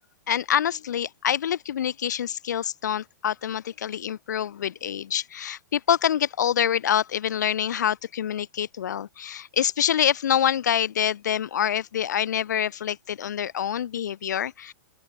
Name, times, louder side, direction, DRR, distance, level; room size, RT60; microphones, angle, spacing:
voice 1, 0.3-14.7, left 9 dB, 75° left, 5.0 m, -26 dB
open air
supercardioid pair, 170°, 9 cm